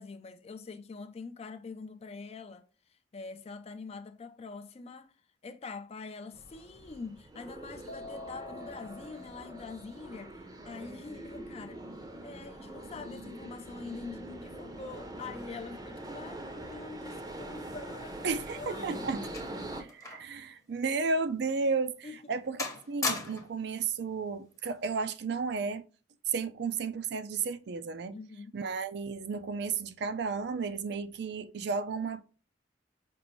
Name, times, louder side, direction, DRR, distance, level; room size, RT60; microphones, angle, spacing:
voice 1, 0.0-5.2 5.4-19.3 22.0-22.3 28.1-28.6, left 4 dB, 35° left, 0.4 m, -45 dB
sound 1, 6.3-19.8, right 1 dB, 20° right, 0.6 m, -43 dB
Keyboard (musical), 7.9-10.4, left 3 dB, 85° left, 0.9 m, -48 dB
voice 2, 18.2-19.3 19.8-22.6 22.9-25.8 26.3-28.2 28.5-32.2, right 4 dB, 65° right, 0.4 m, -33 dB
sound 2, 18.5-20.4 20.7-20.9 21.5-21.6 22.1-22.3 22.6-23.6 24.6-24.9, left 3 dB, 20° left, 0.8 m, -38 dB
5.2 x 2.6 x 3.0 m
head